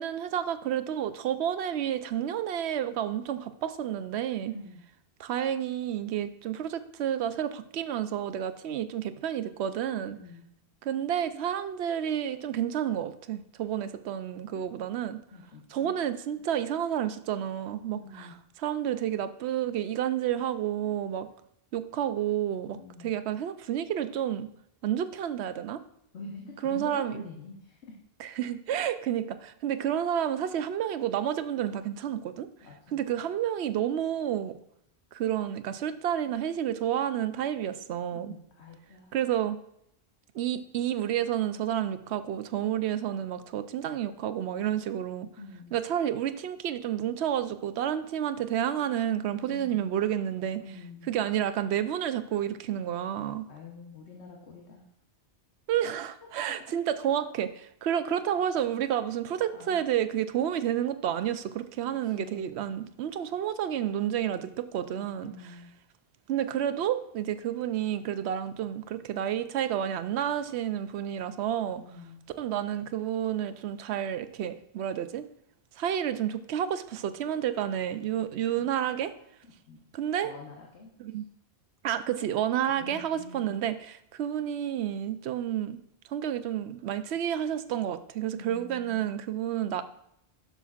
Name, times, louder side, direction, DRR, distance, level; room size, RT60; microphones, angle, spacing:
voice 1, 0.0-4.5 5.2-10.2 10.8-15.2 15.7-18.3 18.6-21.3 21.7-22.8 23.0-24.5 24.8-25.8 26.6-27.1 28.2-32.5 32.9-34.6 35.1-38.3 39.1-39.6 40.3-45.3 45.7-50.6 51.1-53.4 55.7-57.5 57.8-65.3 66.3-71.8 72.4-75.3 75.8-79.1 79.9-80.3 81.0-81.3 81.8-85.8 86.1-89.8, right 10 dB, 80° right, 11 dB, 0.9 m, -30 dB
voice 2, 4.5-4.8 10.1-10.5 14.5-14.7 15.3-15.9 18.0-18.4 22.7-23.1 26.1-27.9 32.6-33.0 38.1-39.2 45.4-45.8 49.5-49.8 50.6-51.1 53.4-54.9 58.0-58.1 58.4-58.6 59.5-59.8 62.0-62.7 64.9-65.7 71.8-72.2 78.1-78.2 78.6-78.7 79.4-79.8 80.2-80.9 82.8-83.6 88.4-89.0, left 3 dB, 80° left, -1 dB, 1.3 m, -46 dB
11.0 x 6.9 x 2.4 m, 0.74 s
omnidirectional pair, 1.1 m